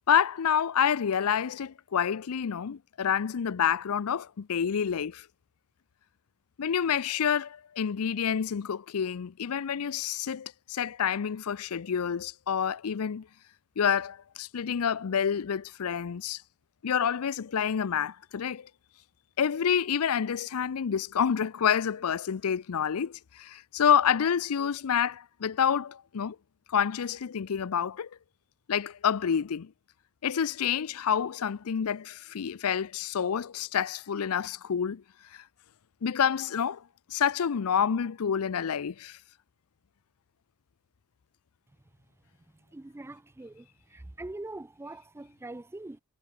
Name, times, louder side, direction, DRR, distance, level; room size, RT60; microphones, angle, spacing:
voice 1, 0.1-5.3 6.6-13.3 13.8-16.4 16.8-18.7 19.4-26.4 26.7-28.1 28.7-29.7 30.2-35.0 35.3-35.4 36.0-36.8 37.1-39.2, left 8 dB, 80° left, 0.5 m, -28 dB
voice 2, 42.7-46.0, right 2 dB, 10° right, 0.4 m, -43 dB
head